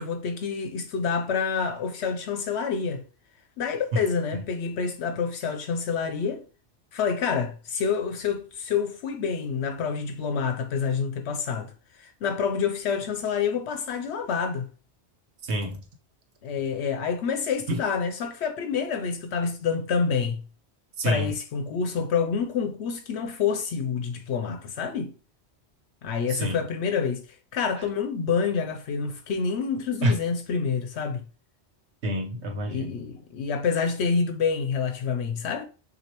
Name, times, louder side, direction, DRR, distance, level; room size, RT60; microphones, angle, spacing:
voice 1, 0.0-3.0 3.6-6.4 6.9-14.7 16.4-20.4 21.0-25.1 26.0-31.2 32.7-35.6, left 6 dB, 75° left, 0.9 m, -28 dB
voice 2, 15.4-15.8 17.7-17.8 21.0-21.3 26.3-26.6 30.0-30.1 32.0-32.9, equal, 75° right, 1.2 m, -27 dB
6.1 x 2.7 x 2.9 m
omnidirectional pair, 1.2 m